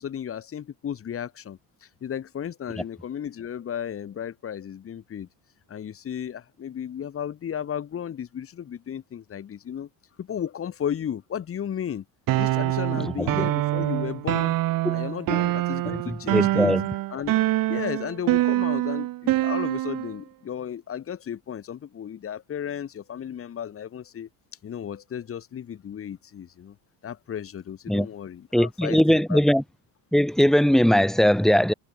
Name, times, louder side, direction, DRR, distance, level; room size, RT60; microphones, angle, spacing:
voice 1, 0.0-5.3 5.7-9.9 10.2-12.0 12.4-14.5 14.9-16.8 17.1-17.3 17.7-24.3 24.6-26.8 27.0-29.4, left 9 dB, 35° left, 7.1 m, -34 dB
sound 1, 12.3-20.1, right 16 dB, 55° right, 3.0 m, -25 dB
voice 2, 13.0-13.5 14.8-15.0 16.1-16.9 27.9-28.1 28.5-29.6 30.1-31.7, equal, ahead, 3.1 m, -20 dB
cardioid pair, 150°, 41 cm